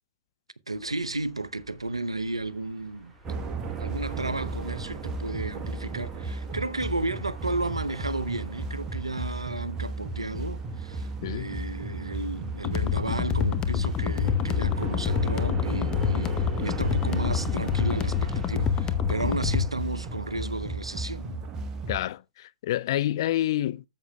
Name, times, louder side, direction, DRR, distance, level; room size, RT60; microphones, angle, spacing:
sound 1, 0.7-18.5, right 2 dB, 10° right, 2.5 m, -51 dB
voice 1, 0.7-3.1 3.8-21.5, right 2 dB, 85° right, 0.6 m, -33 dB
sound 2, 3.2-22.1, right 3 dB, 25° right, 1.1 m, -34 dB
voice 2, 11.2-11.5 21.9-23.8, left 13 dB, 55° left, 0.4 m, -28 dB
sound 3, 12.6-19.7, left 8 dB, 25° left, 0.8 m, -27 dB
13.0 x 7.4 x 2.2 m
figure-of-eight pair, 100°, 3 cm